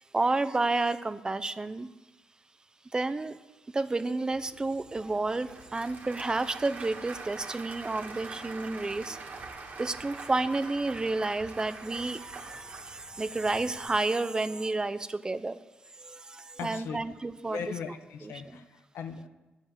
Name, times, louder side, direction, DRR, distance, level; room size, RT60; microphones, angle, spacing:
voice 1, 0.1-1.9 2.9-3.4 3.7-9.2 9.8-15.6 16.0-17.6 18.2-18.3, right 2 dB, 20° right, 0.6 m, -30 dB
Applause / Crowd, 4.3-13.9, right 4 dB, 50° right, 2.0 m, -44 dB
voice 2, 16.6-17.0 17.5-19.3, left 6 dB, 85° left, 1.1 m, -38 dB
11.5 x 7.3 x 9.4 m
cardioid pair, 105°, 4 cm